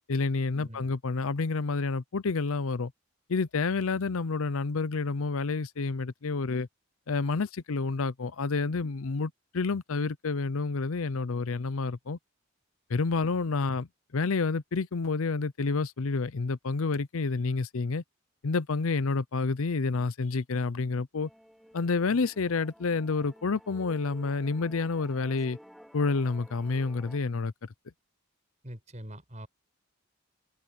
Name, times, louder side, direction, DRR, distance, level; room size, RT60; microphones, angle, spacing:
voice 1, 0.1-2.9 3.3-6.7 7.1-12.2 12.9-13.9 14.1-18.0 18.4-21.3 21.7-25.6 25.9-27.7, left 4 dB, 70° left, 0.6 m, -29 dB
voice 2, 0.6-0.9 28.6-29.5, equal, 30° right, 5.4 m, -44 dB
Musical instrument, 21.2-27.2, equal, ahead, 4.6 m, -53 dB
head